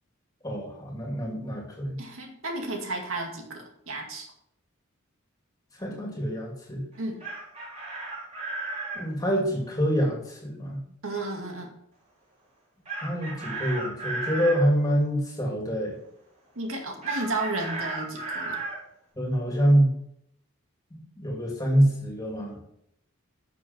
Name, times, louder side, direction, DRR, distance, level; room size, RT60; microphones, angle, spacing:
voice 1, 0.4-2.0 5.8-6.8 8.9-10.8 13.0-15.9 19.2-19.9 20.9-22.6, equal, 15° left, -1 dB, 2.4 m, -26 dB
voice 2, 2.0-4.3 7.0-7.2 11.0-11.7 16.6-18.6, right 2 dB, 75° right, 1 dB, 2.2 m, -33 dB
Chicken rooster, 6.9-9.0 12.9-14.6 17.0-18.8, right 3 dB, 30° right, 4.0 m, -34 dB
11.0 x 6.6 x 4.5 m, 0.73 s
head